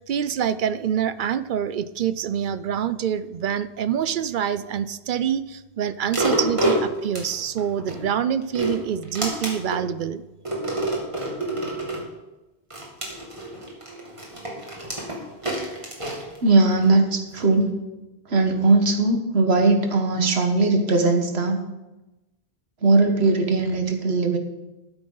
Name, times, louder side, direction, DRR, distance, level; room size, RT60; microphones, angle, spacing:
voice 1, 0.0-10.2, right 9 dB, 60° right, 14 dB, 0.6 m, -26 dB
sound 1, 6.1-8.0 8.4-9.8 10.5-12.1 12.7-16.9 17.4-17.5, right 1 dB, 30° right, 2.3 m, -28 dB
voice 2, 16.4-17.8 18.3-21.6 22.8-24.4, right 3 dB, 80° right, 4 dB, 1.6 m, -19 dB
12.5 x 9.9 x 3.9 m, 1.0 s
omnidirectional pair, 1.1 m